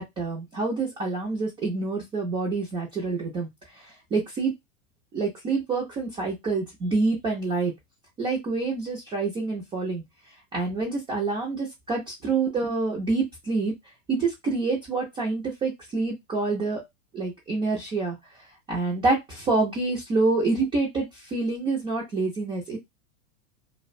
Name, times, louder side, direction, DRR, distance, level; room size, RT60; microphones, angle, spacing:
voice 1, 0.0-4.5 5.1-7.7 8.2-10.0 10.5-13.7 14.1-16.8 17.1-22.8, right 3 dB, 15° right, -2 dB, 0.4 m, -27 dB
2.5 x 2.1 x 2.4 m, 0.18 s
supercardioid pair, 130°, 39 cm